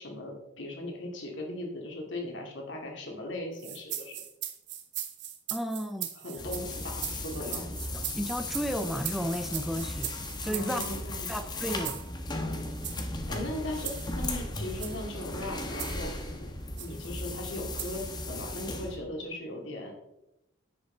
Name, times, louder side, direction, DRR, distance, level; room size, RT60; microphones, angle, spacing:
voice 1, 0.0-4.2 6.2-7.7 10.4-11.3 13.3-16.1 16.8-19.9, left 1 dB, 70° left, 1 dB, 2.4 m, -38 dB
sound 1, 3.6-11.0 11.8-12.1 12.7-13.0 13.8-14.1 14.7-15.0 15.8-16.1 16.8-17.0 17.8-18.1, right 11 dB, 60° right, 1.3 m, -39 dB
voice 2, 5.5-6.1 7.9-10.1 10.4-10.8 11.3-12.0, equal, ahead, 8 dB, 0.5 m, -33 dB
sound 2, 6.4-19.0, left 2 dB, 20° left, 1.1 m, -36 dB
9.9 x 8.3 x 3.9 m, 0.91 s
head